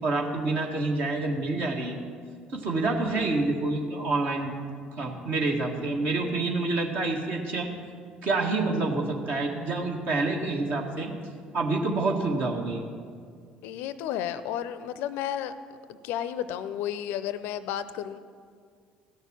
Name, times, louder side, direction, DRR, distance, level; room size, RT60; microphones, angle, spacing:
voice 1, 0.0-2.0 2.5-4.5 5.0-7.7 8.2-11.1 11.5-12.8, right 3 dB, 55° right, 1 dB, 1.7 m, -27 dB
voice 2, 13.6-15.5 15.9-18.2, left 10 dB, 60° left, 14 dB, 0.5 m, -32 dB
15.5 x 6.6 x 6.2 m, 2.1 s
figure-of-eight pair, 55°, 4 cm